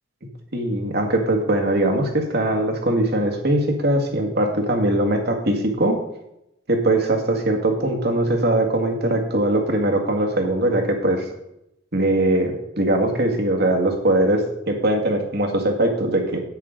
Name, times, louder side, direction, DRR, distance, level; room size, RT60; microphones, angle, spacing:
voice 1, 0.5-6.0 6.7-11.2 11.9-16.4, right 1 dB, 50° right, 3 dB, 2.0 m, -21 dB
10.5 x 9.0 x 3.9 m, 0.85 s
head